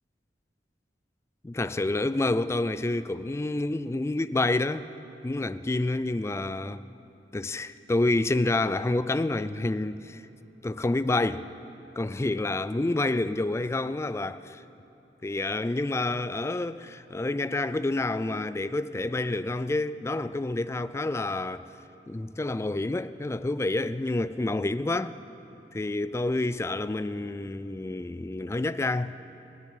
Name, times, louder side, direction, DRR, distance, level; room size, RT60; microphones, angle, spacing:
voice 1, 1.4-4.9 5.2-6.8 7.3-10.2 10.6-11.5 12.0-14.6 15.2-21.7 22.1-25.2 25.7-29.2, left 2 dB, 15° left, 0.3 m, -28 dB
16.5 x 10.5 x 7.8 m
head